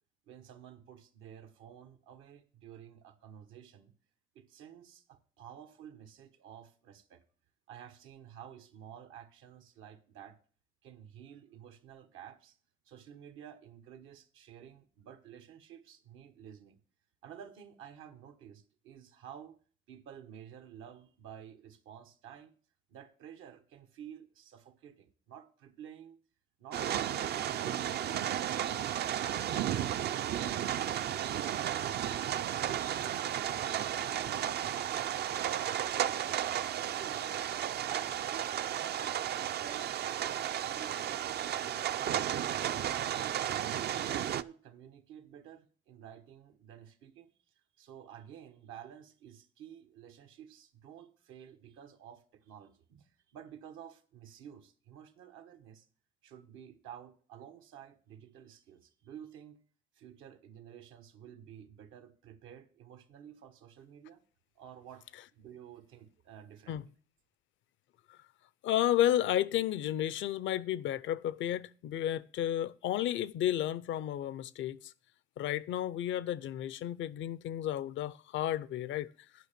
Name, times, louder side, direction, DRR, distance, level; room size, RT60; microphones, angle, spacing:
voice 1, 0.3-3.9 4.3-7.2 7.7-10.4 10.8-12.6 12.9-16.8 17.2-19.6 19.9-22.5 22.9-26.2 26.6-31.1 31.4-32.2 33.0-37.3 37.7-41.1 41.6-43.4 43.9-47.3 47.8-55.8 56.2-59.6 59.9-64.2 64.5-66.8, right 9 dB, 85° right, 1.1 m, -52 dB
sound 1, 26.7-44.4, right 10 dB, 55° right, 0.4 m, -33 dB
voice 2, 68.6-74.9 75.4-79.1, left 12 dB, 70° left, 0.5 m, -32 dB
9.4 x 5.6 x 6.7 m
cardioid pair, 85°, 20 cm